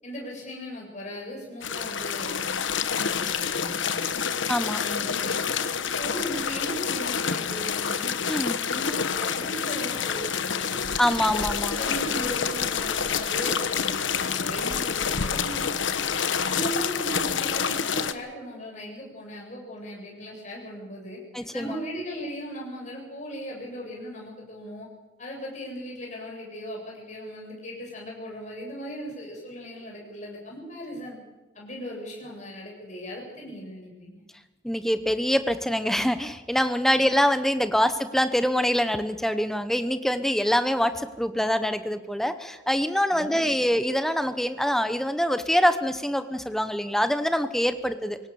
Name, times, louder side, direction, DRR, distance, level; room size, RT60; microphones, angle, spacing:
voice 1, 0.0-4.3 4.8-5.6 5.8-8.2 8.7-11.3 11.7-16.1 16.4-21.2 21.5-24.9 25.2-31.2 31.5-34.2 43.1-43.6, equal, 40° left, -2 dB, 7.8 m, -38 dB
sound 1, 1.6-18.1, left 6 dB, 80° left, 1.2 m, -28 dB
voice 2, 4.5-4.8 8.3-8.6 11.0-11.8 21.3-21.7 34.6-48.2, equal, ahead, 10 dB, 0.9 m, -24 dB
25.0 x 17.5 x 7.1 m, 1.2 s
head